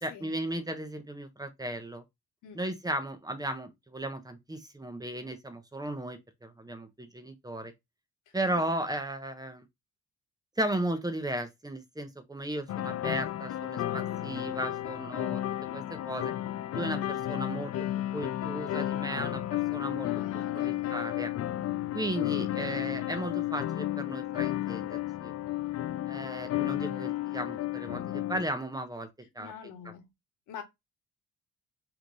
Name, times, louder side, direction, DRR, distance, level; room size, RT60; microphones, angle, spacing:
voice 1, 0.0-2.0 2.5-7.7 8.3-9.6 10.6-15.4 15.7-16.3 16.7-17.7 18.1-20.1 20.5-21.3 21.9-25.3 26.1-29.1 29.3-29.5, right 1 dB, 15° right, 1.0 m, -35 dB
voice 2, 8.3-8.7 20.0-21.0 22.9-23.0 29.4-30.1 30.5-30.6, left 7 dB, 85° left, 1.5 m, -46 dB
sound 1, 12.7-28.5, left 13 dB, 55° left, 0.5 m, -33 dB
3.4 x 3.2 x 4.0 m
cardioid pair, 90°, 30 cm